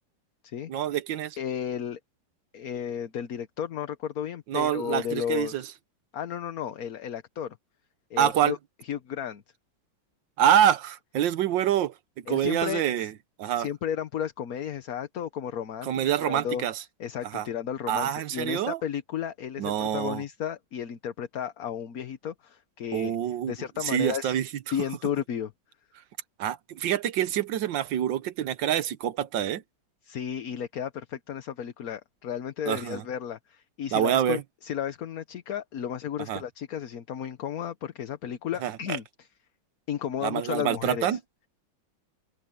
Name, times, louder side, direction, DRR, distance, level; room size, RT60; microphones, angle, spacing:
voice 1, 0.7-1.4 4.5-5.6 8.2-8.5 10.4-11.9 12.3-13.1 13.4-13.7 15.8-16.8 17.3-17.5 17.9-18.8 19.6-20.2 22.9-23.5 23.8-24.4 26.4-29.6 32.7-33.0 33.9-34.4 36.3-36.4 38.6-39.0 40.2-41.2, right 10 dB, 70° right, 1.5 m, -26 dB
voice 2, 1.4-2.0 2.5-5.7 6.1-7.6 8.1-8.6 8.8-9.4 12.3-13.1 13.5-16.6 17.0-23.2 23.5-24.4 24.7-25.5 30.0-39.0 39.9-41.2, left 9 dB, 55° left, 1.3 m, -33 dB
omnidirectional pair, 2.2 m